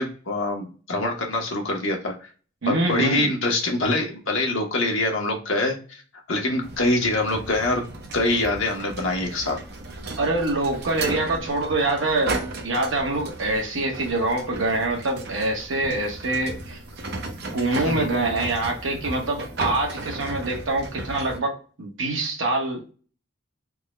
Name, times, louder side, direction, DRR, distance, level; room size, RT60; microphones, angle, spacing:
voice 1, 0.0-2.1 2.7-6.0 6.3-7.8 8.1-9.6 17.8-18.1, left 2 dB, 70° left, 1 dB, 1.0 m, -24 dB
voice 2, 2.6-3.3 10.2-16.8 17.5-22.8, right 2 dB, 70° right, 0 dB, 1.1 m, -25 dB
sound 1, 6.6-21.4, right 2 dB, 50° right, 0.6 m, -35 dB
3.6 x 2.2 x 3.0 m, 0.37 s
head